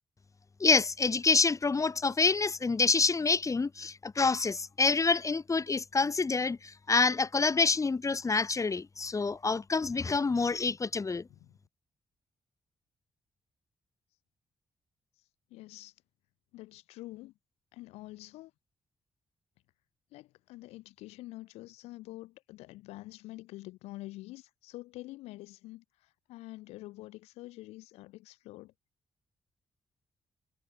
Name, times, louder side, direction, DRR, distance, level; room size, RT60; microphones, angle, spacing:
voice 1, 0.6-11.3, left 4 dB, 30° left, 0.8 m, -27 dB
voice 2, 15.5-15.9 16.5-17.3 17.7-18.5 20.1-25.8 26.3-28.7, left 18 dB, 85° left, 1.9 m, -46 dB
hypercardioid pair, 45°, 10 cm